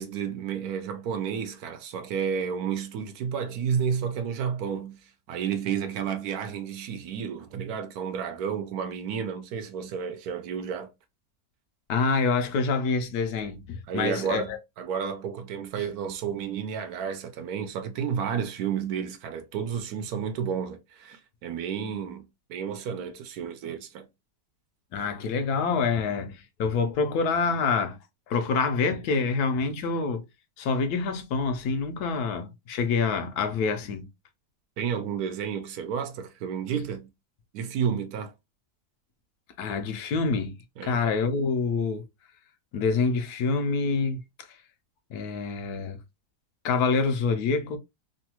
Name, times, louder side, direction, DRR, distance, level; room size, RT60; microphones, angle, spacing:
voice 1, 0.0-5.0 5.3-10.9 13.9-22.2 22.5-24.1 34.8-37.1 37.5-38.3 40.8-41.0, right 7 dB, 75° right, 1.0 m, -31 dB
voice 2, 11.9-14.6 24.9-28.0 28.3-30.2 30.6-34.1 39.6-40.6 40.8-42.0 42.7-44.6 45.1-46.0 46.6-47.8, left 4 dB, 75° left, 1.1 m, -26 dB
3.2 x 2.2 x 2.8 m
omnidirectional pair, 1.7 m